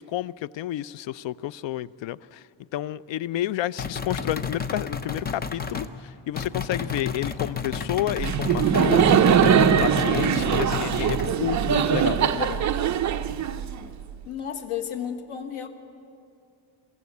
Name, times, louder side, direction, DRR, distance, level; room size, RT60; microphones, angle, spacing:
voice 1, 0.0-2.4 2.7-12.7, left 13 dB, 65° left, 19 dB, 0.5 m, -30 dB
sound 1, 3.8-5.9 6.4-11.3, left 6 dB, 20° left, 0.5 m, -32 dB
Laughter, 8.2-14.0, right 8 dB, 35° right, 0.6 m, -21 dB
voice 2, 14.2-15.7, left 9 dB, 85° left, 6 dB, 1.7 m, -32 dB
24.0 x 14.5 x 8.3 m, 2.5 s
cardioid pair, 175°, 48 cm